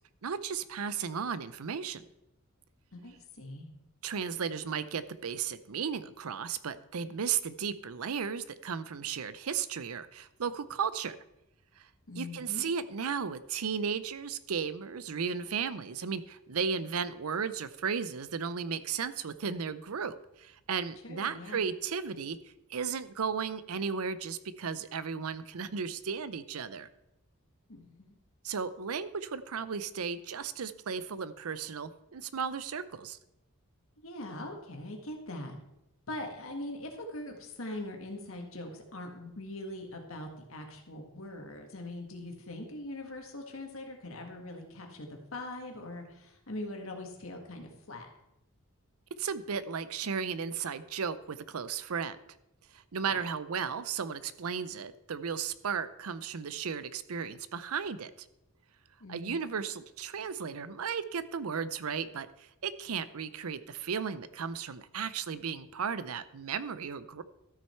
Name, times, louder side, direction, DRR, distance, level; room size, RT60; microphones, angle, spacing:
voice 1, 0.2-2.0 4.0-11.2 11.8-11.9 12.2-22.4 22.7-26.9 28.4-33.2 49.2-52.2 52.7-58.1 59.1-67.2, right 6 dB, 90° right, 15 dB, 0.6 m, -35 dB
voice 2, 2.9-3.7 12.1-12.6 21.0-21.6 27.7-28.1 34.0-35.6 36.1-48.1 53.1-53.3 59.0-59.4, left 1 dB, 70° left, 3 dB, 1.8 m, -42 dB
13.0 x 6.3 x 4.4 m, 0.86 s
head